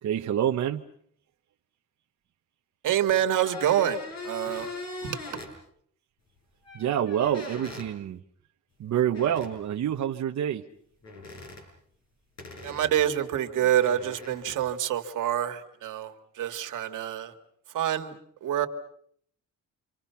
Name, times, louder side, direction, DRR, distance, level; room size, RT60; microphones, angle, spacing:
voice 1, 0.0-0.9 6.7-8.2 8.8-10.7, right 10 dB, 60° right, 2 dB, 1.0 m, -27 dB
voice 2, 2.8-4.7 5.0-5.4 12.6-17.3 17.7-18.7, right 11 dB, 80° right, 6 dB, 2.0 m, -27 dB
sound 1, 3.4-5.5 6.6-7.9 9.1-9.5 11.0-11.6 12.4-14.6, left 2 dB, 55° left, 7.4 m, -41 dB
29.5 x 26.0 x 5.8 m, 0.66 s
cardioid pair, 135°, 31 cm